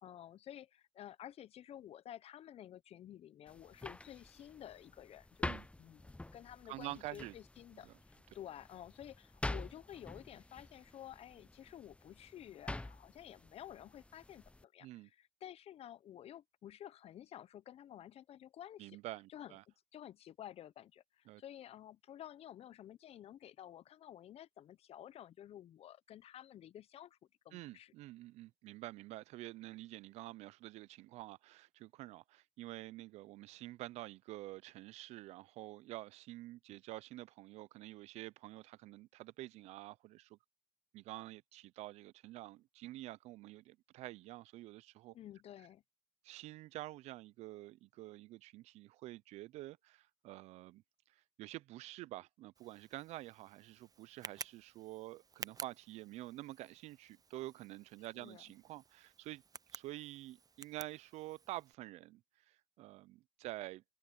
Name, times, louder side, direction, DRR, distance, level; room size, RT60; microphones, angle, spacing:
voice 1, 0.0-19.0 19.3-19.5 19.9-27.2 27.4-27.9 45.1-45.8 58.0-58.4, left 11 dB, 60° left, 1.0 m, -52 dB
sound 1, 3.5-14.6, left 2 dB, 10° left, 0.7 m, -47 dB
voice 2, 6.7-7.3 7.8-8.0 14.8-15.1 18.8-19.6 21.3-21.4 27.5-40.4 40.9-45.1 46.2-50.8 51.1-59.4 59.7-63.8, right 17 dB, 75° right, 0.7 m, -48 dB
Tick, 52.6-61.7, right 5 dB, 35° right, 0.8 m, -53 dB
open air
hypercardioid pair, 55°, 12 cm